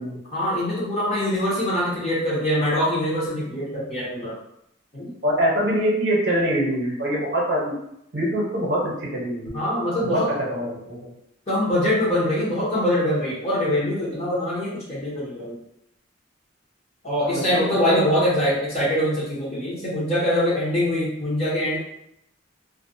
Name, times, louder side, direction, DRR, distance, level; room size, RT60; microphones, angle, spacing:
voice 1, 0.3-4.3 4.9-5.1 9.5-10.3 11.5-15.6 17.0-21.8, equal, 30° left, -8 dB, 0.8 m, -23 dB
voice 2, 5.2-7.7 8.1-9.6 10.0-11.0 17.2-18.0, equal, 60° right, -4 dB, 0.8 m, -24 dB
2.4 x 2.2 x 2.6 m, 0.77 s
head